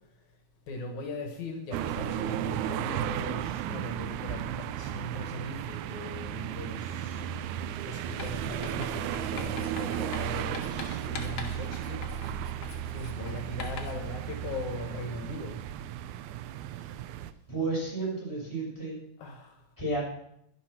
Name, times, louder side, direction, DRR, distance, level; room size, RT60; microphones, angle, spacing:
voice 1, 0.7-7.2 7.6-12.0 12.9-15.6 19.2-19.6, left 2 dB, 75° left, 4 dB, 2.8 m, -39 dB
sound 1, 1.7-17.3, right 11 dB, 90° right, 2.1 m, -34 dB
Writing, 8.2-14.1, left 5 dB, 55° left, 2.0 m, -43 dB
voice 2, 13.2-13.5 17.5-18.9 19.8-20.0, right 2 dB, 5° left, -6 dB, 6.5 m, -32 dB
11.5 x 11.0 x 6.1 m, 0.73 s
omnidirectional pair, 3.4 m